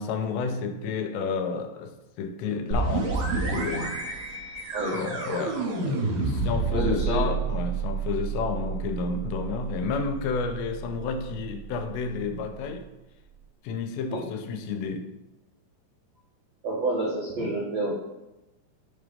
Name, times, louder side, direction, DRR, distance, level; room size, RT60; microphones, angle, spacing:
voice 1, 0.0-4.0 4.9-12.9 13.6-15.1 17.4-17.5, left 5 dB, 80° left, 7 dB, 2.9 m, -31 dB
sound 1, 2.7-12.3, right 4 dB, 60° right, 2.8 m, -30 dB
voice 2, 6.7-7.3 14.1-14.2 16.6-18.0, right 2 dB, 80° right, -5 dB, 1.4 m, -28 dB
10.5 x 3.5 x 5.1 m, 0.97 s
omnidirectional pair, 5.1 m